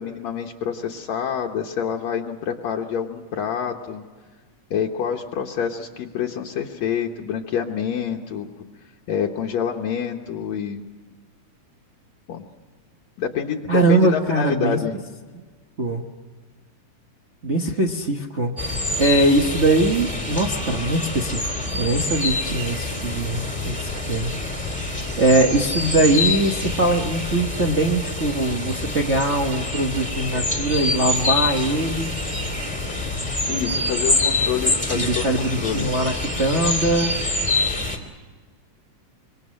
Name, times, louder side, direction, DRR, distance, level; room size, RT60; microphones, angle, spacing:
voice 1, 0.0-4.0 4.7-8.5 9.1-10.8 12.3-12.4 13.2-15.0 32.9-33.0 33.3-35.9, left 7 dB, 70° left, 1 dB, 2.2 m, -27 dB
voice 2, 13.7-14.8 15.8-16.0 17.4-18.5 19.0-21.5 21.8-23.8 24.1-24.3 25.2-32.1 34.9-37.1, right 2 dB, 55° right, 0 dB, 0.7 m, -21 dB
sound 1, 18.6-38.0, left 2 dB, 5° left, 2.4 m, -26 dB
26.0 x 23.5 x 6.5 m, 1.4 s
omnidirectional pair, 3.5 m